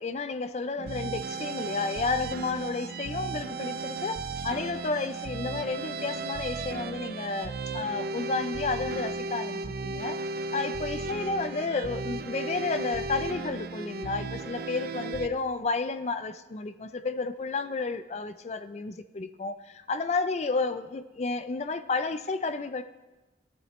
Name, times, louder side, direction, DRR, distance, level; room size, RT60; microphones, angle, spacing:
voice 1, 0.0-4.2 4.4-10.2 10.5-22.8, left 3 dB, 35° left, 0.4 m, -31 dB
sound 1, 0.8-15.3, right 3 dB, 50° right, 0.4 m, -35 dB
12.5 x 8.8 x 3.1 m
head